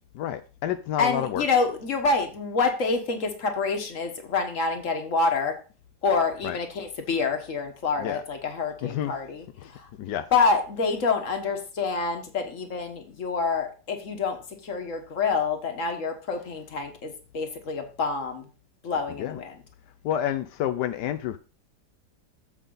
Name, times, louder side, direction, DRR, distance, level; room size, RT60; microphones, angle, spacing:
voice 1, 0.1-1.5 6.4-6.6 8.0-8.2 8.8-9.1 9.6-9.7 10.0-10.3 19.2-19.4 20.0-21.4, left 11 dB, 85° left, 1.2 m, -29 dB
voice 2, 1.0-5.6 6.0-9.9 10.3-18.5 18.8-19.6, left 4 dB, 50° left, 1.8 m, -27 dB
8.7 x 7.3 x 4.0 m
omnidirectional pair, 1.8 m